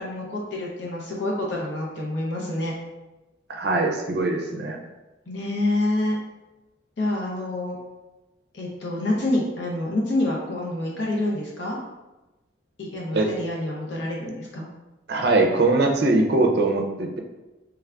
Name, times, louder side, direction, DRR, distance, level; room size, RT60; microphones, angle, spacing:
voice 1, 0.0-2.7 5.3-6.2 7.0-7.8 8.5-11.8 12.8-14.6, left 1 dB, 65° left, -3 dB, 0.6 m, -27 dB
voice 2, 3.5-4.8 13.1-13.3 15.1-17.2, right 2 dB, 55° right, 3 dB, 0.4 m, -21 dB
3.4 x 2.4 x 3.3 m, 1.1 s
head